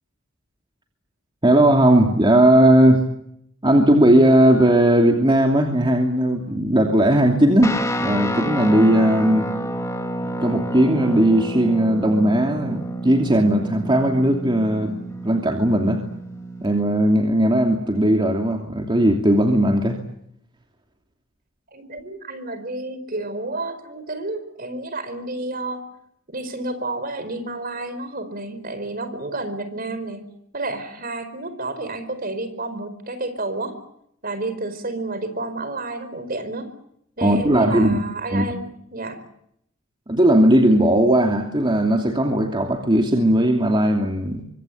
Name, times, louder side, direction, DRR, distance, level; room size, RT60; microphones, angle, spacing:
voice 1, 1.4-3.0 3.6-9.5 10.4-14.9 15.2-16.0 16.6-20.0 37.2-38.0 38.3-38.4 40.1-44.4, right 1 dB, 25° right, 3 dB, 2.8 m, -17 dB
Guitar, 7.6-16.7, equal, 15° left, 2.8 m, -29 dB
voice 2, 21.7-25.8 26.3-30.2 30.5-33.8 34.2-36.7 37.2-38.6 38.9-39.2, right 2 dB, 45° right, 11 dB, 4.7 m, -30 dB
25.0 x 24.0 x 8.5 m, 0.74 s
head